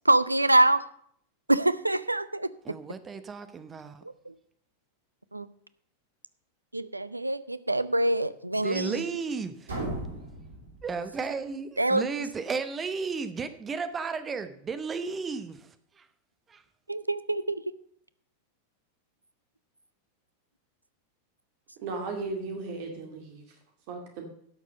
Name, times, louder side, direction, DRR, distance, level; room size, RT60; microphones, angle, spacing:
voice 1, 0.0-0.8 1.5-2.8 4.3-4.4 5.3-5.5 6.7-9.0 11.8-12.1 16.9-17.6, right 1 dB, 85° right, 0.5 m, -25 dB
voice 2, 2.6-4.0 8.6-9.7 10.8-16.1 16.5-16.6, right 5 dB, 20° right, 0.9 m, -34 dB
sound 1, 9.7-11.5, right 1 dB, 70° right, 2.8 m, -37 dB
voice 3, 21.8-23.6 23.9-24.3, right 3 dB, 45° right, 2.2 m, -36 dB
11.5 x 6.6 x 5.3 m
figure-of-eight pair, 90°, 0 cm